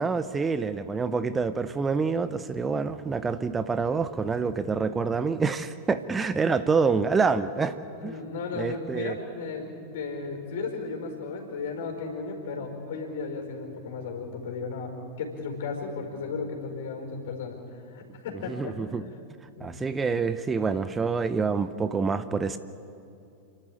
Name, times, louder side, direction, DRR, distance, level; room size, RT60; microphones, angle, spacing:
voice 1, 0.0-7.7 8.0-8.1 8.6-9.1 18.5-19.0 19.6-22.6, right 5 dB, 15° right, 12 dB, 0.7 m, -27 dB
voice 2, 8.0-14.9 15.2-17.6 17.9-18.8 19.5-19.7, left 4 dB, 55° left, 3 dB, 4.6 m, -35 dB
29.5 x 12.0 x 8.7 m, 2.6 s
figure-of-eight pair, 90°, 0 cm